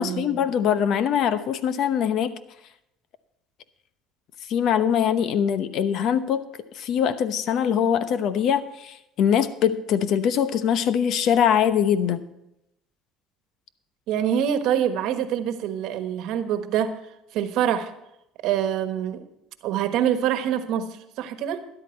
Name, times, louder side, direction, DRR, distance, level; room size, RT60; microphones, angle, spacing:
voice 1, 0.0-2.4 4.5-6.5 6.7-12.3, left 8 dB, 60° left, 12 dB, 0.9 m, -22 dB
voice 2, 14.1-16.9 17.3-17.9 18.4-19.3 19.6-20.9 21.2-21.6, right 9 dB, 70° right, 9 dB, 1.2 m, -25 dB
13.0 x 11.0 x 4.5 m, 0.83 s
supercardioid pair, 90°, 0 cm